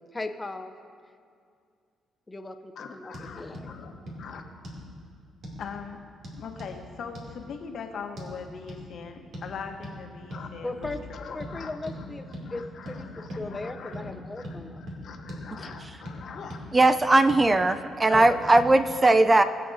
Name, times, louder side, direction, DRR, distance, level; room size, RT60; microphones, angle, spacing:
voice 1, 0.1-0.7 2.3-3.7 10.6-11.0 11.3-14.8 18.1-18.4, left 2 dB, 15° left, 6 dB, 0.7 m, -37 dB
voice 2, 2.8-4.4 5.6-6.0 6.3-11.8 12.4-16.6 17.5-18.0 18.3-18.5 19.3-19.4, left 6 dB, 65° left, 4 dB, 1.1 m, -42 dB
sound 1, 3.1-3.3 3.5-3.7 4.1-4.2 4.6-4.9 5.4-5.6 6.2-6.7 7.1-7.3 8.2-8.3 8.7-8.8 9.3-9.5 9.8-10.0 10.3-10.5 10.8-11.0 11.4-11.5 11.9-12.0 12.3-12.5 12.9-13.0 13.3-13.5 13.9-14.1 14.4-14.6 14.9-15.0 15.3-15.4 15.7-16.2 16.5-16.6 17.0-17.5 18.1-18.3 18.6-18.7, equal, 70° right, 2.7 m, -39 dB
voice 3, 16.7-19.4, right 2 dB, 20° right, 10 dB, 0.4 m, -19 dB
21.0 x 7.6 x 2.7 m, 2.3 s
cardioid pair, 90°, 0 cm